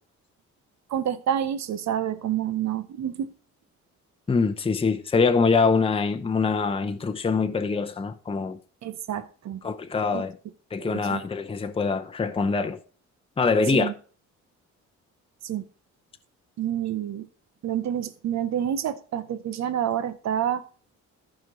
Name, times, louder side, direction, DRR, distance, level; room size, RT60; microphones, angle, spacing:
voice 1, 0.9-3.3 8.8-9.6 10.1-10.2 10.8-11.2 13.7-13.9 15.4-15.6 16.6-17.3 17.6-20.7, right 10 dB, 65° right, 0.9 m, -28 dB
voice 2, 4.3-8.6 9.6-10.4 10.7-12.8 13.4-13.9, left 4 dB, 20° left, 0.7 m, -24 dB
14.0 x 5.1 x 3.9 m
cardioid pair, 90°, 30 cm